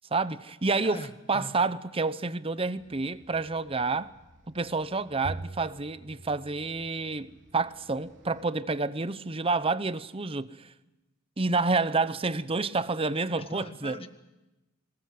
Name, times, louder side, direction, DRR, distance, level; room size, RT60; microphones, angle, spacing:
voice 1, 0.1-1.0 1.3-4.1 4.5-10.7 11.4-14.0, right 3 dB, 30° right, 0.8 m, -29 dB
voice 2, 0.8-1.5 13.4-14.1, left 2 dB, 30° left, 1.6 m, -41 dB
sound 1, 2.8-8.4, equal, 65° right, 3.5 m, -60 dB
Bowed string instrument, 5.2-7.8, right 2 dB, 80° right, 1.0 m, -43 dB
25.0 x 20.0 x 7.7 m
head